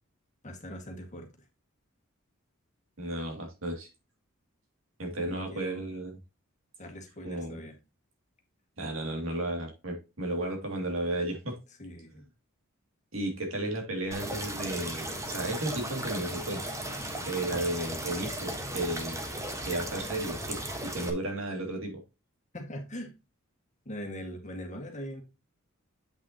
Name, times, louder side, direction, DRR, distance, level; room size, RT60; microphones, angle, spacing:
voice 1, 0.4-1.3 5.2-5.9 6.8-7.8 11.8-12.1 17.3-17.6 22.5-23.1 23.9-25.2, equal, 35° left, 3 dB, 1.8 m, -41 dB
voice 2, 3.0-3.9 5.0-6.1 7.2-7.6 8.8-11.6 13.1-16.6 17.3-19.2 19.6-22.0, right 1 dB, 65° right, 2 dB, 2.5 m, -33 dB
sound 1, 14.1-21.1, right 1 dB, 15° right, 1.3 m, -36 dB
8.2 x 5.6 x 2.9 m, 0.27 s
head